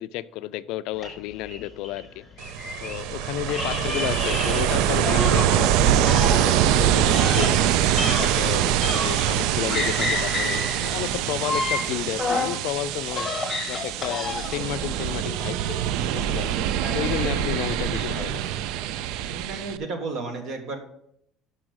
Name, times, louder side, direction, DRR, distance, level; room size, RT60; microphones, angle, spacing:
voice 1, 0.0-2.3 2.8-7.7 8.2-13.3 13.7-15.8 16.1-16.5 16.9-18.5, left 14 dB, 70° left, 0.3 m, -32 dB
sound 1, 1.0-3.1 3.5-5.7 6.0-9.4 9.7-12.6 13.0-14.7, left 3 dB, 10° left, 1.6 m, -30 dB
Ocean, 2.4-19.8, right 10 dB, 70° right, 0.3 m, -24 dB
sound 2, 5.1-19.8, right 4 dB, 15° right, 2.4 m, -47 dB
voice 2, 7.9-8.3 16.8-17.1 19.2-20.8, right 3 dB, 45° right, 1.5 m, -33 dB
6.1 x 6.1 x 6.2 m
cardioid pair, 170°, 0 cm